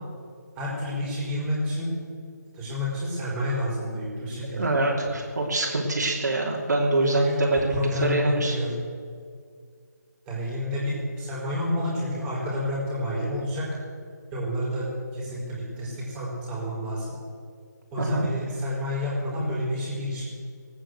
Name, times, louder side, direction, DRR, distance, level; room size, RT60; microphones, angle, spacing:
voice 1, 0.5-1.9 2.5-4.7 7.0-8.7 10.2-13.6 14.3-17.1 17.9-20.2, left 1 dB, 15° right, -5 dB, 4.7 m, -29 dB
voice 2, 4.5-8.6 18.0-18.3, right 2 dB, 70° right, -2 dB, 3.0 m, -24 dB
19.0 x 9.1 x 7.9 m, 2.2 s
figure-of-eight pair, 155°, 10 cm